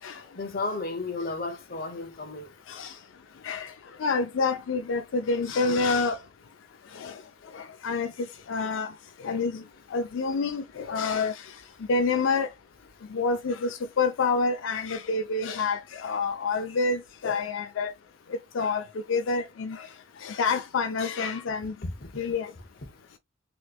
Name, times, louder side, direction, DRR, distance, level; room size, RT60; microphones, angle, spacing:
voice 1, 0.4-2.5 21.8-22.1 22.8-22.9, left 3 dB, 50° left, 0.8 m, -33 dB
voice 2, 4.0-6.2 6.9-7.2 7.5-8.1 8.5-8.9 9.2-9.6 9.9-11.5 11.9-12.5 13.1-17.9 18.3-19.9 20.2-21.7 22.2-22.5, left 4 dB, 80° left, 0.4 m, -28 dB
3.1 x 3.0 x 2.3 m
head